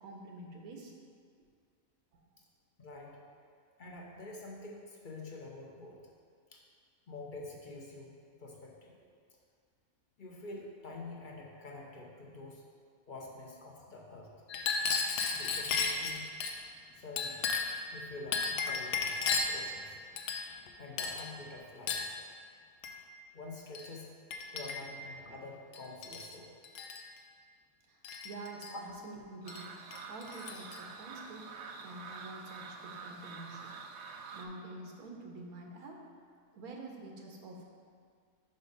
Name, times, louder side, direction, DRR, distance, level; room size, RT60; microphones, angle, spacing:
voice 1, 0.0-0.9 2.1-2.2 27.9-29.7 30.1-31.5 31.8-33.8 34.3-36.0 36.5-37.6, right 2 dB, 85° right, 1 dB, 1.4 m, -47 dB
voice 2, 2.8-3.2 3.8-6.0 6.5-6.6 7.1-8.2 8.4-9.0 10.2-12.6 13.0-14.3 15.3-16.3 16.9-17.5 17.9-20.0 20.8-22.2 23.3-24.1 24.5-26.5 28.7-28.8, left 2 dB, 40° left, -2 dB, 0.8 m, -47 dB
Chink clink, 14.5-16.6 17.2-17.8 18.3-19.6 20.2-20.7 21.0-21.3 21.9-22.1 22.8-23.0 23.8-23.9 24.3-25.0 25.7-26.3 26.6-27.0 28.0-28.7 29.5-29.6 29.9-30.8, left 5 dB, 90° left, 1.1 m, -34 dB
sound 1, 29.4-34.5, right 5 dB, 65° right, 0.7 m, -47 dB
5.3 x 5.1 x 5.3 m, 2.1 s
omnidirectional pair, 1.5 m